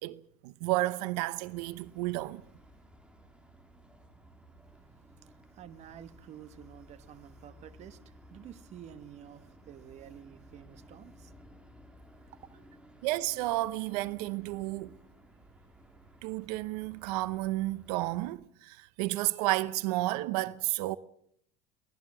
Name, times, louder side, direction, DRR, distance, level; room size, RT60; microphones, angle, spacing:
voice 1, 0.0-2.4 13.0-15.0 16.2-21.0, right 18 dB, 75° right, 0.8 m, -32 dB
sound 1, 1.4-18.3, equal, 5° right, 2.7 m, -56 dB
voice 2, 5.2-11.3 12.5-12.8, right 10 dB, 35° right, 1.3 m, -50 dB
23.5 x 17.5 x 7.5 m
cardioid pair, 160°, 20 cm